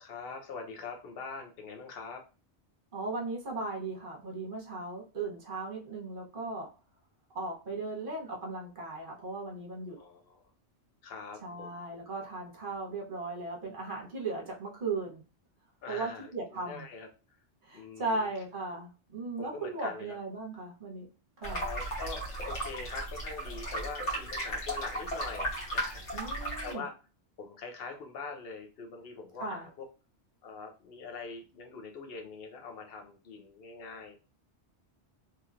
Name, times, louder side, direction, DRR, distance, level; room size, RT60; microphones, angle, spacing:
voice 1, 0.0-2.2 9.9-10.4 11.0-11.8 15.8-17.1 17.7-18.3 19.4-20.2 21.5-26.9 27.4-29.9 30.4-34.2, left 4 dB, 60° left, 3 dB, 0.9 m, -43 dB
voice 2, 2.9-6.7 7.3-10.0 11.4-15.2 15.9-16.9 17.6-21.1 21.4-21.6 26.1-26.8 29.4-29.7, right 3 dB, 50° right, -1 dB, 1.1 m, -37 dB
sound 1, 21.4-26.7, right 1 dB, 80° left, 1.5 m, -35 dB
3.0 x 2.9 x 2.5 m, 0.32 s
omnidirectional pair, 1.2 m